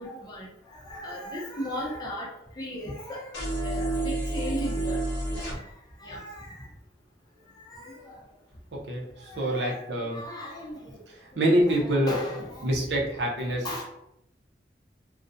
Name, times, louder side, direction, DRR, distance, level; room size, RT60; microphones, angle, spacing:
voice 1, 0.0-2.3 2.6-5.0 5.3-5.6 6.0-6.7 7.6-8.2 9.2-11.0 11.3-13.2 13.6-13.8, equal, 25° left, -4 dB, 0.6 m, -37 dB
sound 1, 3.3-5.5, right 2 dB, 75° left, 0.7 m, -29 dB
voice 2, 8.9-10.2 11.4-12.1 12.6-13.6, right 1 dB, 75° right, -2 dB, 0.6 m, -25 dB
2.4 x 2.1 x 2.6 m, 0.82 s
head